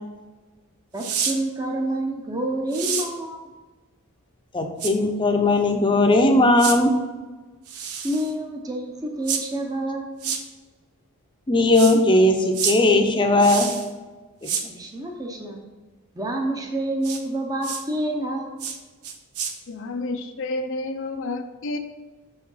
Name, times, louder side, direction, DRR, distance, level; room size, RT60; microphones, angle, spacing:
voice 1, 0.9-3.5 8.0-10.4 14.7-15.6 16.2-18.5, right 1 dB, 15° right, 2 dB, 0.7 m, -28 dB
sound 1, 1.0-1.4 2.7-3.1 4.8-4.9 6.6-6.8 7.7-8.3 9.3-9.4 10.2-10.4 11.7-12.0 12.5-12.8 13.4-13.9 14.4-14.6 17.0-17.2 17.6-17.8 18.6-18.8 19.0-19.5, right 7 dB, 85° right, 0.8 m, -28 dB
voice 2, 4.5-6.9 11.5-13.7 14.4-14.5, left 2 dB, 20° left, 4 dB, 0.7 m, -18 dB
voice 3, 19.7-21.8, left 2 dB, 60° left, 6 dB, 0.5 m, -30 dB
6.3 x 4.8 x 5.5 m, 1.3 s
head